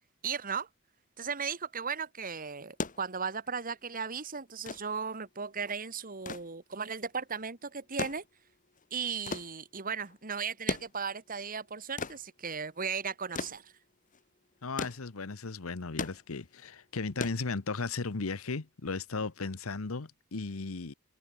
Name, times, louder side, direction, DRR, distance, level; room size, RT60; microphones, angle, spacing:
voice 1, 0.2-0.7 1.2-8.2 8.9-13.7, right 6 dB, 40° right, 2.0 m, -36 dB
sound 1, 2.6-18.1 19.3-19.4, left 3 dB, 40° left, 1.9 m, -41 dB
voice 2, 14.6-20.9, left 4 dB, 80° left, 1.0 m, -36 dB
head